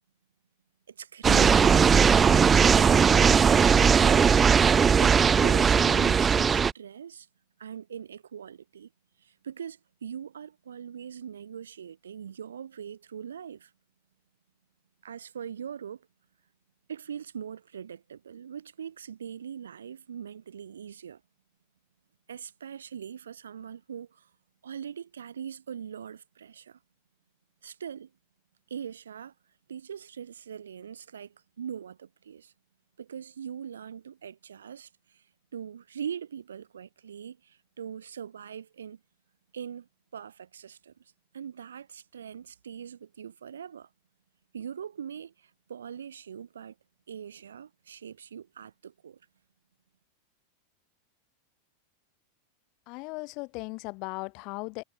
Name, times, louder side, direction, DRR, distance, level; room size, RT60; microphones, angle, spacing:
voice 1, 0.9-1.9 4.9-7.3 7.6-8.9 9.2-13.7 15.0-16.1 16.9-21.2 22.3-24.3 24.6-26.8 27.6-28.1 28.7-29.3 29.7-32.5 33.0-35.3 35.5-39.0 39.5-41.0 41.3-43.9 44.5-46.8 47.1-49.2, right 8 dB, 65° right, 2.3 m, -41 dB
sound 1, 1.2-6.7, right 6 dB, 20° right, 0.4 m, -19 dB
voice 2, 52.9-54.8, left 28 dB, 45° left, 7.1 m, -37 dB
figure-of-eight pair, 90°, 0 cm